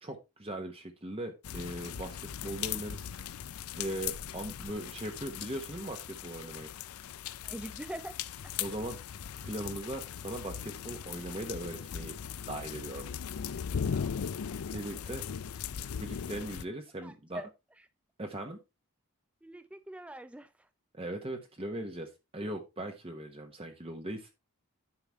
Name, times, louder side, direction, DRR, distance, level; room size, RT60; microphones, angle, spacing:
voice 1, 0.0-3.1 3.8-6.7 8.6-9.0 9.4-12.2 12.5-13.0 14.7-15.2 16.0-17.4 18.2-18.6 20.9-24.3, right 1 dB, 25° right, 1.0 m, -39 dB
sound 1, 1.4-16.6, left 8 dB, 85° left, 0.5 m, -39 dB
voice 2, 7.4-8.2 13.8-14.7 17.0-17.5 19.4-20.5, right 1 dB, 5° right, 0.4 m, -44 dB
9.8 x 5.9 x 3.5 m
head